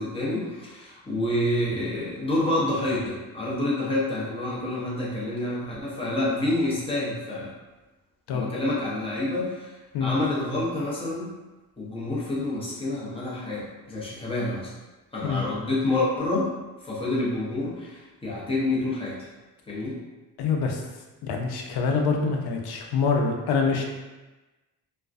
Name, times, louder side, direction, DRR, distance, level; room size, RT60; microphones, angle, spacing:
voice 1, 0.0-7.5 8.3-11.3 11.8-14.7 15.1-16.5 16.8-19.2 19.7-20.0, left 2 dB, 15° left, -8 dB, 0.5 m, -28 dB
voice 2, 20.4-20.8 21.2-23.8, left 5 dB, 75° left, 2 dB, 0.5 m, -25 dB
2.5 x 2.1 x 2.3 m, 1.1 s
cardioid pair, 165°, 39 cm